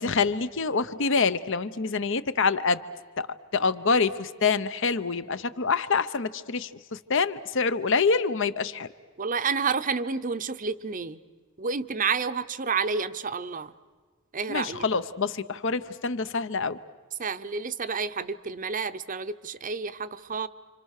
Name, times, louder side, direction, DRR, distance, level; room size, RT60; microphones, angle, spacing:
voice 1, 0.0-2.8 3.2-3.3 3.5-8.9 14.5-16.8, left 4 dB, 60° left, 13 dB, 0.9 m, -26 dB
voice 2, 9.2-11.2 11.6-13.7 14.3-14.9 17.2-20.5, right 5 dB, 40° right, 13 dB, 0.7 m, -30 dB
29.5 x 26.0 x 6.6 m, 1.5 s
head